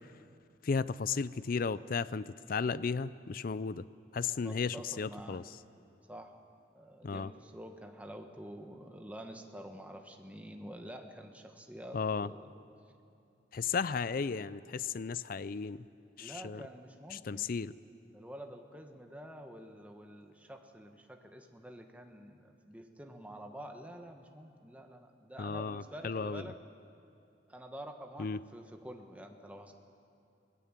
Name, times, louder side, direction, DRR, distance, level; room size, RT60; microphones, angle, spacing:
voice 1, 0.6-3.8 4.1-5.4 7.0-7.3 11.9-12.3 13.5-15.8 16.2-16.6 17.1-17.7 25.4-26.4 28.2-28.4, left 5 dB, 50° left, 17 dB, 0.4 m, -34 dB
voice 2, 4.4-5.5 6.1-6.4 6.7-12.5 16.2-17.6 18.1-26.6 27.5-29.7, equal, 10° right, 4 dB, 1.3 m, -48 dB
24.0 x 18.0 x 7.5 m, 2.6 s
head